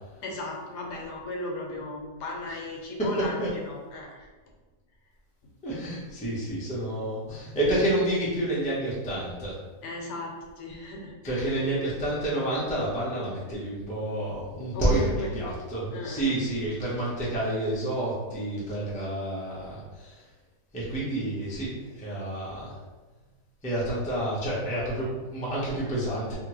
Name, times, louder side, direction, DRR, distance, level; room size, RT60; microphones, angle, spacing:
voice 1, 0.2-4.3 9.8-11.9 14.7-15.3 15.9-16.4, left 2 dB, 80° left, 0 dB, 1.2 m, -36 dB
voice 2, 5.6-9.5 11.2-20.1 20.7-22.7 23.6-26.3, right 1 dB, 10° left, -8 dB, 0.4 m, -29 dB
2.8 x 2.6 x 3.0 m, 1.3 s
omnidirectional pair, 1.8 m